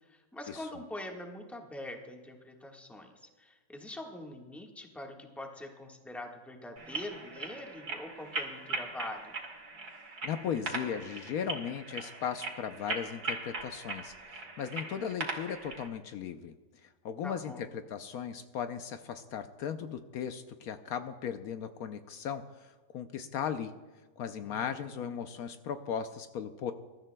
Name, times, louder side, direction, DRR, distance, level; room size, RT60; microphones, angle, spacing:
voice 1, 0.1-9.3 17.2-17.7 24.3-25.1, left 1 dB, ahead, 1 dB, 1.3 m, -44 dB
sound 1, 6.8-15.9, right 3 dB, 75° right, 2.2 m, -40 dB
voice 2, 10.2-16.5 16.8-23.7 24.2-26.7, left 8 dB, 75° left, 8 dB, 1.1 m, -37 dB
22.0 x 13.0 x 2.2 m, 1.3 s
omnidirectional pair, 1.7 m